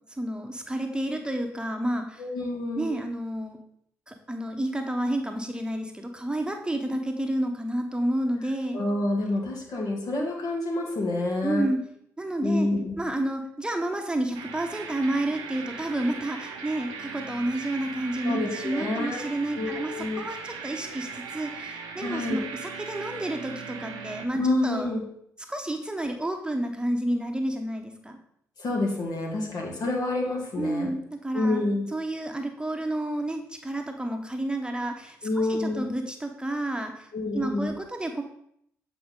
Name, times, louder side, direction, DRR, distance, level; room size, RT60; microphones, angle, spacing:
voice 1, 0.1-2.3 2.8-3.6 4.1-8.8 11.4-11.8 12.2-12.7 13.0-24.9 25.5-28.2 30.6-31.6 31.9-38.2, right 1 dB, 10° right, 4 dB, 0.9 m, -30 dB
voice 2, 2.2-3.0 8.7-11.7 12.4-13.0 18.2-19.2 19.5-20.2 22.0-22.4 24.3-25.0 28.6-30.9 31.3-31.9 35.2-35.9 37.1-37.7, left 2 dB, 60° left, -1 dB, 1.6 m, -28 dB
sound 1, 14.3-24.3, right 5 dB, 75° right, 0.7 m, -39 dB
7.8 x 4.3 x 3.8 m, 0.71 s
hypercardioid pair, 40°, 8 cm